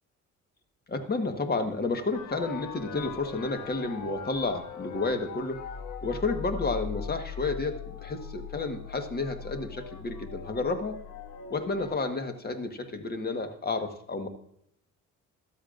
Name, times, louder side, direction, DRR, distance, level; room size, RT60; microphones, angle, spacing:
voice 1, 0.9-5.6 6.0-11.0 11.5-14.3, left 3 dB, 30° left, 7 dB, 1.4 m, -31 dB
sound 1, 2.1-12.0, left 7 dB, 75° left, 1.1 m, -40 dB
13.5 x 12.5 x 2.6 m, 0.71 s
cardioid pair, 115°, 31 cm